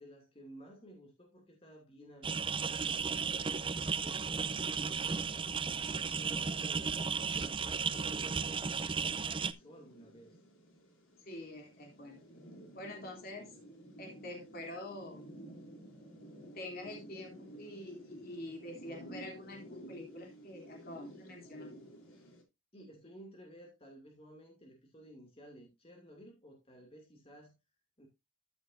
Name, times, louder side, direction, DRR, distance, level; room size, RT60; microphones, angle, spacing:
voice 1, 0.0-4.2 4.9-6.9 7.3-10.4 13.4-13.6 22.7-27.6 28.0-28.1, equal, 30° left, 2.5 m, -55 dB
sound 1, 2.2-9.5, right 5 dB, 25° right, 0.5 m, -34 dB
sound 2, 8.9-22.4, right 1 dB, 90° left, 3.8 m, -54 dB
voice 2, 11.2-12.2 12.7-13.6 14.0-15.3 16.5-21.7, left 1 dB, 45° left, 3.1 m, -46 dB
13.5 x 7.0 x 2.6 m
head